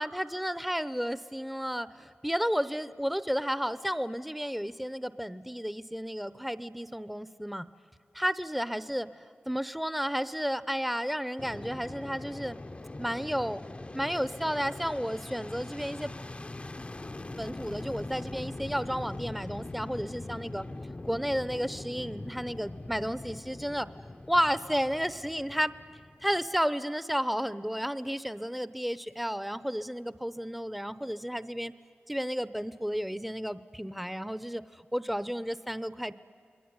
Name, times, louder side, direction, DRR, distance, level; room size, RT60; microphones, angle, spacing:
voice 1, 0.0-7.7 8.1-12.6 13.0-13.6 13.9-16.1 17.4-20.6 21.0-23.9 24.3-25.7 26.2-31.7 32.1-36.1, equal, ahead, 15 dB, 0.7 m, -32 dB
Fixed-wing aircraft airplane, 11.4-26.6, left 2 dB, 30° left, 0.7 m, -42 dB
28.0 x 21.5 x 9.6 m, 2.5 s
wide cardioid pair, 70°, 4 cm